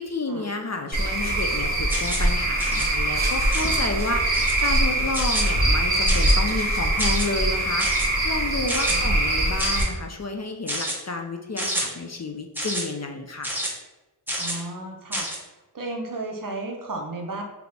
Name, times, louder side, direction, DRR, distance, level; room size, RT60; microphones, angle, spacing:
voice 1, 0.0-13.5, left 3 dB, 40° left, 4 dB, 0.5 m, -31 dB
Cricket / Frog, 0.9-9.8, right 1 dB, 20° right, 1.2 m, -23 dB
sound 1, 1.9-2.3 2.6-2.9 3.5-3.9 4.3-4.6 5.1-5.5 6.1-6.4 7.0-7.3 7.8-8.1 8.7-9.0 9.6-9.9 10.7-11.0 11.6-11.9 12.6-12.8 13.4-13.7 14.3-14.6 15.1-15.4, equal, 5° right, 0.9 m, -29 dB
voice 2, 14.4-15.3 15.7-17.4, right 2 dB, 50° right, 2 dB, 0.8 m, -33 dB
4.0 x 2.9 x 3.4 m, 1.1 s
wide cardioid pair, 65°, 41 cm